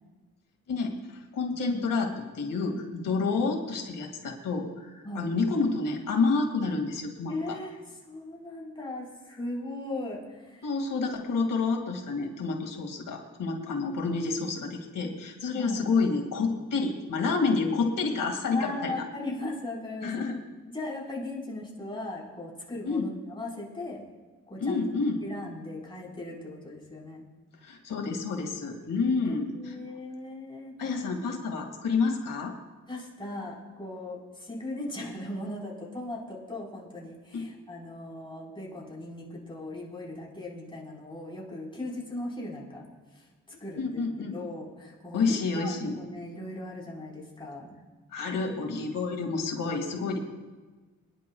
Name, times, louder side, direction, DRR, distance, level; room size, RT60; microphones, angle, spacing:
voice 1, 0.7-1.0 1.3-7.6 10.6-19.0 20.0-20.4 22.8-23.1 24.6-25.2 27.6-29.5 30.8-32.5 37.3-37.5 43.5-44.4 45.1-46.0 48.1-50.2, left 4 dB, 80° left, 2 dB, 2.1 m, -29 dB
voice 2, 1.5-1.8 2.5-2.8 5.0-5.3 7.3-10.7 14.0-14.1 15.5-15.9 18.5-20.3 20.7-24.0 24.5-24.8 25.2-27.2 29.2-30.7 32.9-42.9 43.1-43.3 43.6-47.7, left 1 dB, 15° left, -4 dB, 4.2 m, -38 dB
27.5 x 10.5 x 2.3 m, 1.3 s
wide cardioid pair, 115°, 32 cm